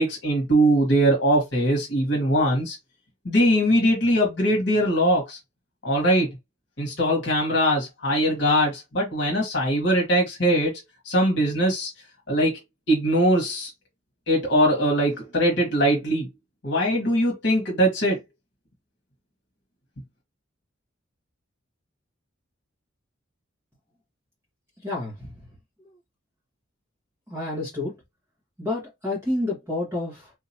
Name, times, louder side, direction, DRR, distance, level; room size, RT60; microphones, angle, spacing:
voice 1, 0.0-2.8 3.2-5.4 5.8-6.3 6.8-10.7 11.0-11.9 12.3-12.5 12.9-13.7 14.3-16.3 16.6-18.2, equal, 55° left, 1.4 m, -21 dB
voice 2, 24.8-25.3 27.3-27.9 28.6-30.3, left 2 dB, 15° right, 1.4 m, -29 dB
3.7 x 2.8 x 2.8 m
head